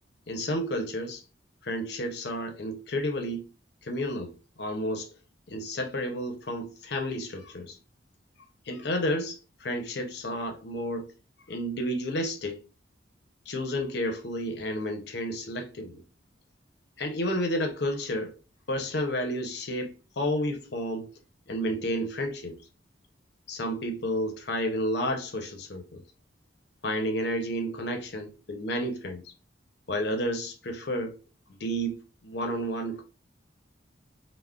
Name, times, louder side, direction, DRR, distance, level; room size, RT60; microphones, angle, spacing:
voice 1, 0.3-1.2 1.6-3.5 3.8-5.1 5.5-7.8 8.7-11.1 11.5-12.6 13.5-16.0 17.0-18.3 18.7-21.1 21.5-22.6 23.5-26.0 26.8-29.3 29.9-31.1 31.5-33.0, equal, 55° left, 0.6 m, -31 dB
2.3 x 2.1 x 3.5 m
head